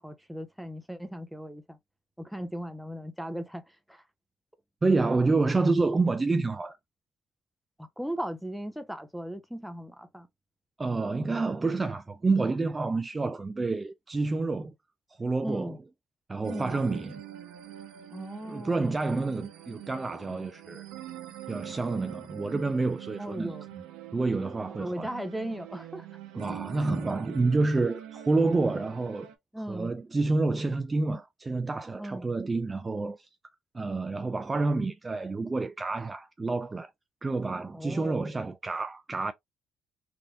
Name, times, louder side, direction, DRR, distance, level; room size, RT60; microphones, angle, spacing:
voice 1, 0.0-1.8 2.2-3.6 3.9-4.0 7.8-10.3 15.4-15.8 16.5-16.8 18.1-18.9 23.2-23.7 24.8-26.1 27.0-27.1 29.5-29.9 32.0-32.3 37.7-38.3, right 1 dB, ahead, 0.7 m, -37 dB
voice 2, 4.8-6.8 10.8-14.7 15.2-15.8 16.3-17.2 18.5-20.9 21.5-23.5 24.1-25.1 26.3-29.3 29.7-33.3 33.7-36.9 37.2-39.3, right 3 dB, 25° right, 0.3 m, -28 dB
sound 1, 16.4-29.4, right 12 dB, 85° right, 0.7 m, -44 dB
3.4 x 2.6 x 2.4 m
cardioid pair, 85°, 0 cm